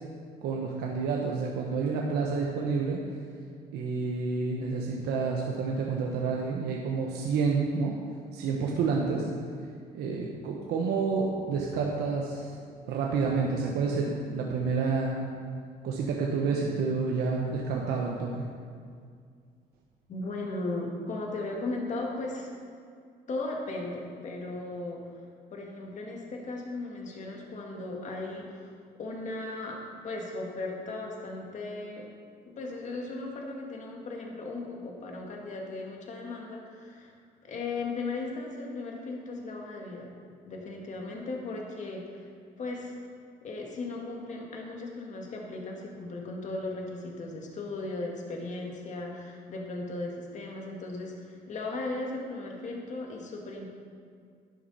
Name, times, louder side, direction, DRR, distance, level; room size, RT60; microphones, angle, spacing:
voice 1, 0.4-3.0 3.7-7.9 8.3-9.3 9.9-12.5 12.9-15.2 15.8-18.4, right 4 dB, 75° right, -1 dB, 1.2 m, -29 dB
voice 2, 20.1-22.5 23.3-25.1 25.5-32.1 32.5-37.1 37.4-40.1 40.5-42.2 42.6-43.0 43.4-53.7, left 2 dB, 45° left, 0 dB, 2.0 m, -37 dB
11.0 x 10.5 x 4.3 m, 2.1 s
cardioid pair, 110°, 17 cm